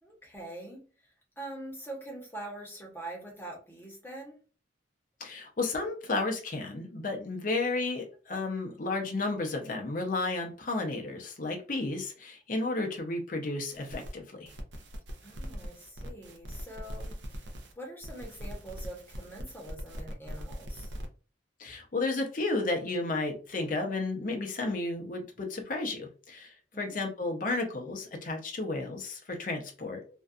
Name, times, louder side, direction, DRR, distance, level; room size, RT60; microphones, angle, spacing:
voice 1, 0.0-4.4 15.2-17.5 17.7-20.9 26.7-27.0, right 1 dB, 10° left, -2 dB, 0.8 m, -44 dB
voice 2, 5.2-14.5 21.6-30.2, left 2 dB, 45° left, 2 dB, 0.5 m, -33 dB
sound 1, 13.7-14.1 14.5-17.7 18.0-21.1, equal, 65° right, 0.5 m, -41 dB
2.5 x 2.2 x 2.3 m, 0.35 s
head